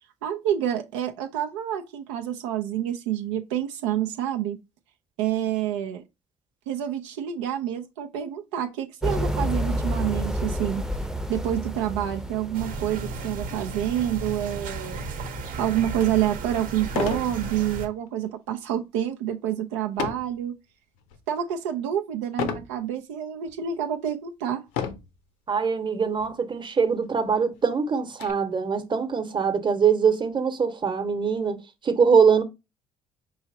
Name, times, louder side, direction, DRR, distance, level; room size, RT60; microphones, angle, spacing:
voice 1, 0.2-4.6 5.2-6.0 6.7-10.8 11.3-15.0 15.6-20.5 21.3-24.6, right 11 dB, 85° right, 0.5 m, -28 dB
sound 1, 9.0-13.7, equal, 5° right, 0.6 m, -29 dB
sound 2, 12.5-17.9, right 3 dB, 70° right, 0.9 m, -34 dB
sound 3, 15.9-16.0 16.9-17.3 17.8-18.1 20.0-20.4 21.0-21.4 22.4-22.7 23.5-23.6 24.7-25.2 26.2-26.3 26.6-26.7 27.2-28.3, left 8 dB, 75° left, 0.6 m, -31 dB
voice 2, 25.5-32.4, right 6 dB, 30° right, 1.0 m, -23 dB
4.7 x 3.0 x 2.7 m
hypercardioid pair, 55°, 15 cm